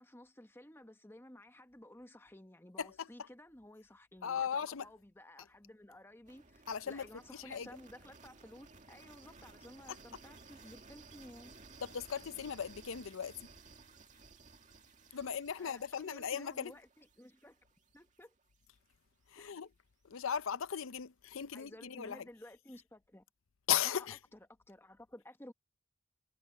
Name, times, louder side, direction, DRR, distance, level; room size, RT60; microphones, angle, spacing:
voice 1, 0.0-11.5 15.1-15.2 15.6-17.6 17.9-18.3 19.4-19.5 21.5-23.2 23.8-24.4 24.7-25.5, left 1 dB, 10° left, 1.1 m, -55 dB
voice 2, 2.8-3.3 4.2-4.9 6.7-7.7 9.9-10.0 11.8-13.5 15.1-16.7 19.3-19.7 20.0-22.3 23.7-24.2, left 8 dB, 85° left, 0.6 m, -37 dB
sound 1, 6.2-18.2, right 4 dB, 40° right, 2.1 m, -58 dB
head